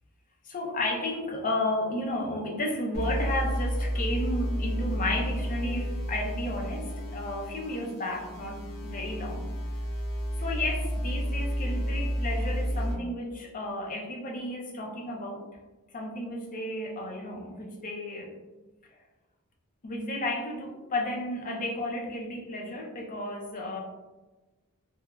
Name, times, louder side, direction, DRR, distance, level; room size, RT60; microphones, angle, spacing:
voice 1, 0.4-9.5 10.4-15.4 15.9-18.4 18.9-19.0 19.8-23.8, left 1 dB, 35° left, 0 dB, 0.4 m, -33 dB
sound 1, 2.9-12.9, equal, 80° left, 1.0 m, -31 dB
3.1 x 2.2 x 2.3 m, 1.2 s
head